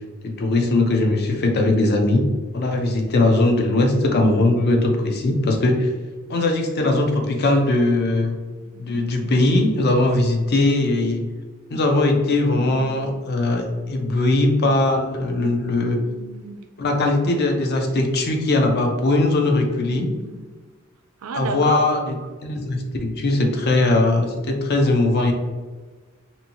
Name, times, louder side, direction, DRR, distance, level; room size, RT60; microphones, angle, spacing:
voice 1, 0.2-2.2 2.5-5.9 6.3-8.4 8.8-11.2 11.7-16.0 16.8-20.1 21.3-25.3, left 2 dB, 50° left, 3 dB, 0.5 m, -20 dB
voice 2, 8.6-9.4 12.4-12.9 15.7-16.6 19.7-20.5 21.2-21.8, right 4 dB, 70° right, 6 dB, 0.4 m, -34 dB
2.7 x 2.6 x 2.8 m, 1.3 s
head